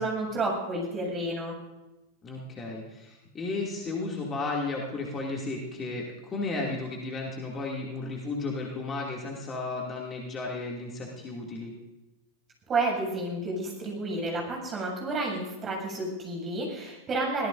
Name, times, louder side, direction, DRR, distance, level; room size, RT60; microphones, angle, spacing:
voice 1, 0.0-1.5 12.7-17.5, right 2 dB, 25° right, -1 dB, 7.4 m, -30 dB
voice 2, 2.2-11.7, left 3 dB, 20° left, -2 dB, 2.6 m, -34 dB
24.0 x 18.0 x 2.7 m, 1.0 s
figure-of-eight pair, 90°, 0 cm